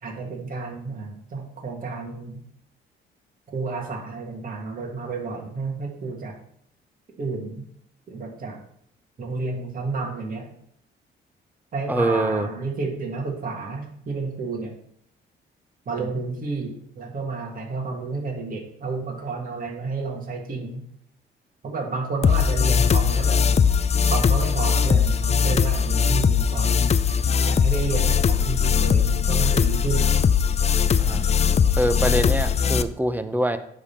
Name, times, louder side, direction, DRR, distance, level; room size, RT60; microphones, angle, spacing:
voice 1, 0.0-2.4 3.5-6.4 7.2-7.6 8.1-8.6 9.2-10.5 11.7-14.7 15.9-20.8 21.6-23.4 24.1-26.7 27.5-30.1, right 3 dB, 45° right, 0 dB, 1.9 m, -31 dB
voice 2, 11.9-12.5 31.0-31.2 31.8-33.6, right 1 dB, 10° right, 9 dB, 0.8 m, -24 dB
sound 1, 22.2-32.8, left 7 dB, 35° left, 0.5 m, -20 dB
9.5 x 3.7 x 5.8 m, 0.70 s
cardioid pair, 90°, 20 cm